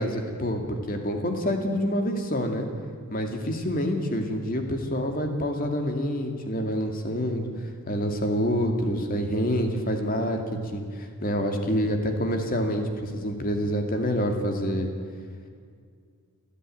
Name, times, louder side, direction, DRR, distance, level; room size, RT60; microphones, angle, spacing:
voice 1, 0.0-2.7 3.1-7.5 7.9-14.9, equal, 40° left, 4 dB, 2.4 m, -27 dB
29.5 x 10.0 x 9.2 m, 2.1 s
head